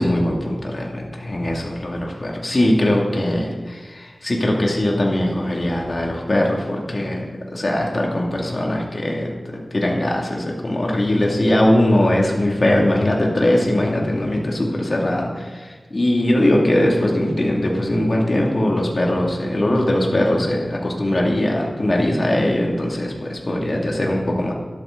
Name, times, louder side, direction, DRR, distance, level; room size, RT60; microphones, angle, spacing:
voice 1, 0.0-7.3 7.5-24.5, left 1 dB, 50° left, -1 dB, 2.4 m, -20 dB
12.5 x 12.0 x 4.0 m, 1.4 s
wide cardioid pair, 50°, 0 cm